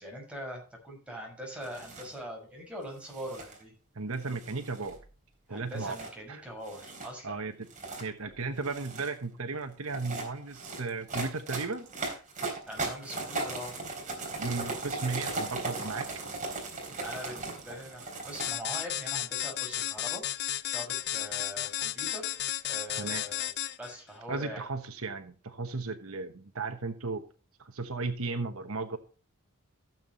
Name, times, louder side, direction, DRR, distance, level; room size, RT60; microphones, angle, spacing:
voice 1, 0.0-3.7 5.5-7.4 12.7-13.7 17.0-20.2 20.6-22.3 22.6-23.5 23.8-24.6, equal, 5° right, -2 dB, 6.0 m, -42 dB
sound 1, 1.6-2.1 3.0-3.6 4.3-5.0 5.8-6.1 6.6-7.1 7.6-8.1 8.6-9.1 9.8-18.5, right 3 dB, 35° right, 3.8 m, -37 dB
voice 2, 3.9-5.0 5.5-6.0 6.3-6.4 7.2-7.5 8.0-11.9 14.4-16.1 23.0-23.2 24.3-27.2 27.6-29.0, right 3 dB, 70° right, 7 dB, 1.2 m, -35 dB
sound 2, 18.4-23.9, left 13 dB, 50° left, 0.5 m, -33 dB
16.5 x 7.4 x 3.1 m, 0.37 s
head